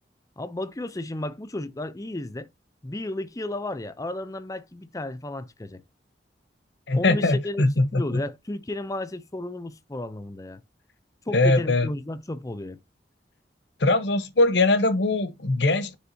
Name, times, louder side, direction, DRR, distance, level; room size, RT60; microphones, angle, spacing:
voice 1, 0.4-2.5 2.8-5.8 6.9-10.6 11.3-12.8, left 1 dB, 20° left, 0.5 m, -33 dB
voice 2, 6.9-8.2 11.3-11.9 13.8-15.9, left 2 dB, 85° left, 0.9 m, -21 dB
9.6 x 3.5 x 2.8 m
head